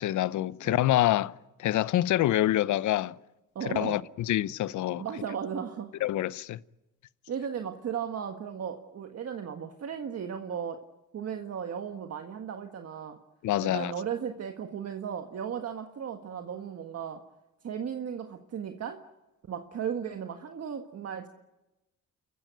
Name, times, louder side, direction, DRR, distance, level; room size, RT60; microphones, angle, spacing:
voice 1, 0.0-1.3 1.6-3.1 3.7-5.0 6.0-6.6 13.4-13.9, left 14 dB, 75° left, 0.7 m, -26 dB
voice 2, 3.6-4.0 5.0-5.9 7.3-10.8 11.1-13.2 13.6-17.2 17.6-19.0 19.5-21.3, right 8 dB, 55° right, 1.6 m, -36 dB
29.5 x 15.0 x 9.2 m
cardioid pair, 90°, 30 cm